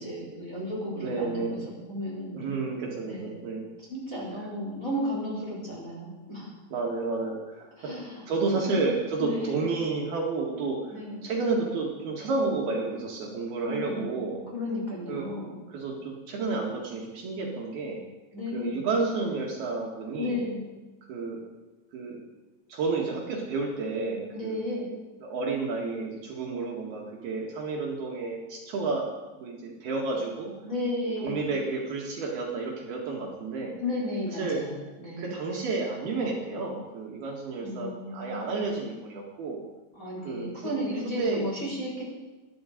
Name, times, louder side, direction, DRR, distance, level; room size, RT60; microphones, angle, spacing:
voice 1, 0.0-1.6 1.9-2.4 3.0-3.3 3.9-6.5 7.8-8.2 8.5-8.8 9.2-9.6 10.9-11.2 13.6-14.2 14.5-15.6 18.3-18.9 20.2-20.6 24.3-24.9 30.6-31.5 33.8-35.3 37.6-38.6 39.9-42.0, left 1 dB, 20° left, -4 dB, 4.2 m, -33 dB
voice 2, 1.0-1.6 2.3-3.7 4.4-4.5 6.7-7.7 8.3-10.9 11.2-14.4 15.1-15.3 15.7-18.0 18.5-20.4 21.1-21.4 21.9-22.2 22.7-24.6 25.2-29.1 29.4-30.5 31.2-33.8 34.3-34.6 35.2-39.6 40.2-40.7 41.0-41.4, right 3 dB, 60° right, -2 dB, 3.4 m, -31 dB
21.0 x 12.5 x 5.2 m, 1.2 s
omnidirectional pair, 5.4 m